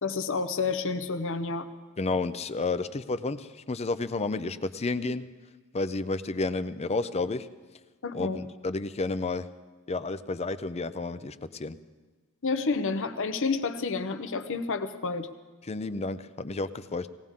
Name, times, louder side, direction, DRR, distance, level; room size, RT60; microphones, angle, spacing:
voice 1, 0.0-1.7 8.0-8.4 12.4-15.3, left 4 dB, 60° left, 9 dB, 0.9 m, -29 dB
voice 2, 2.0-5.3 5.7-7.5 8.1-9.5 9.9-11.8 15.7-17.1, left 3 dB, 30° left, 13 dB, 0.5 m, -31 dB
19.5 x 17.0 x 3.7 m, 1.4 s
head